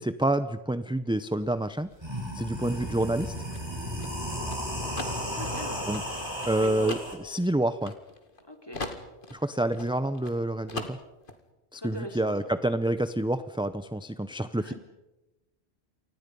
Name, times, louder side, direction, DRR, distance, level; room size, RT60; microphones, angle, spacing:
voice 1, 0.0-1.9 2.3-3.3 5.8-6.0 6.5-7.9 9.3-11.0 11.7-14.7, right 1 dB, 5° right, 12 dB, 0.5 m, -28 dB
sound 1, 1.4-1.5 1.9-7.1, equal, 25° right, 6.1 m, -34 dB
voice 2, 2.6-3.0 5.3-5.8 6.6-6.9 8.5-8.8 11.8-12.5 14.5-14.7, left 1 dB, 25° left, 4 dB, 3.5 m, -41 dB
sound 2, 3.1-8.4 8.7-10.4 10.7-11.4, left 2 dB, 55° left, 2.3 m, -39 dB
29.0 x 25.0 x 5.4 m, 1.0 s
omnidirectional pair, 1.1 m